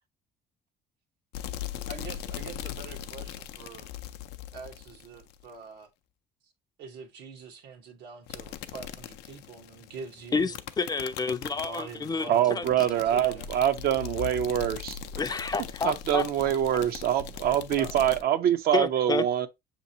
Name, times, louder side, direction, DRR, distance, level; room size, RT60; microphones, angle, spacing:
sound 1, 1.3-5.5 8.3-18.2, left 10 dB, 90° left, 0.4 m, -40 dB
voice 1, 1.8-3.9 4.5-5.9 6.8-10.6 11.4-12.5 12.7-13.5 17.8-18.0, right 4 dB, 85° right, 1.2 m, -44 dB
voice 2, 10.8-12.6 15.2-16.2 18.7-19.5, left 4 dB, 25° left, 0.4 m, -29 dB
voice 3, 12.3-15.0 15.8-19.5, right 10 dB, 65° right, 0.6 m, -25 dB
6.5 x 2.9 x 2.7 m
cardioid pair, 110°, 17 cm